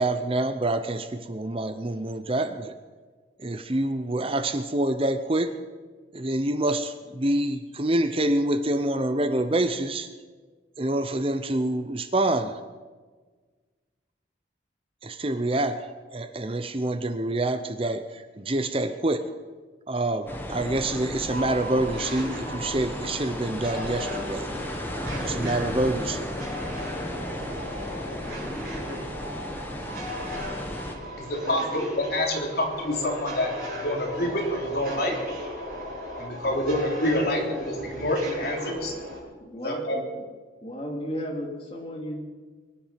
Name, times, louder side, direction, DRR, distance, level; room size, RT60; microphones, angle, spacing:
voice 1, 0.0-2.7 3.4-5.5 6.1-10.1 10.8-12.6 15.0-15.9 16.1-19.3 19.9-24.5 25.2-26.3, right 1 dB, 30° right, 9 dB, 0.7 m, -26 dB
sound 1, 20.3-30.9, equal, 10° left, 1.3 m, -35 dB
sound 2, 21.3-39.2, equal, 50° right, 6.9 m, -36 dB
voice 2, 31.2-33.5 33.8-35.1 36.2-38.9 39.6-40.0, left 1 dB, 55° left, -1 dB, 3.6 m, -27 dB
voice 3, 39.4-40.2 40.6-42.2, equal, 30° left, -1 dB, 3.1 m, -34 dB
23.0 x 10.5 x 5.8 m, 1.4 s
head